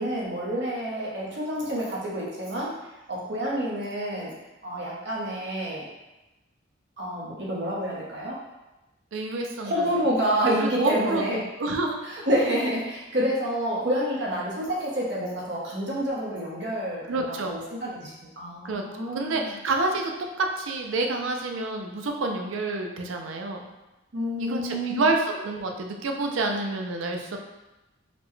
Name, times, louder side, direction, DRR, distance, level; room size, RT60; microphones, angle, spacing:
voice 1, 0.0-2.7 3.1-4.3 4.6-5.8 7.0-8.4 9.6-11.4 12.0-19.6 24.1-25.1, equal, 60° right, -5 dB, 0.9 m, -28 dB
voice 2, 9.1-9.7 10.8-12.0 17.1-17.6 18.6-18.8 19.1-20.1 20.4-23.7 24.4-27.4, right 2 dB, 75° right, 3 dB, 0.4 m, -28 dB
4.1 x 2.2 x 3.1 m, 1.0 s
head